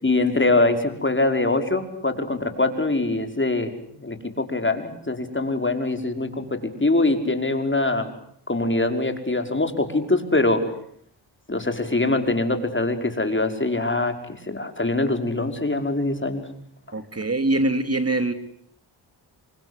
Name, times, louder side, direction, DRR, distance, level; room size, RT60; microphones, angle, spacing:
voice 1, 0.0-8.1 8.5-10.6 11.5-16.4, left 2 dB, 25° left, 7 dB, 5.6 m, -23 dB
voice 2, 16.9-18.3, right 2 dB, 35° right, 10 dB, 2.9 m, -23 dB
29.0 x 25.0 x 8.1 m, 0.65 s
cardioid pair, 60°, 45 cm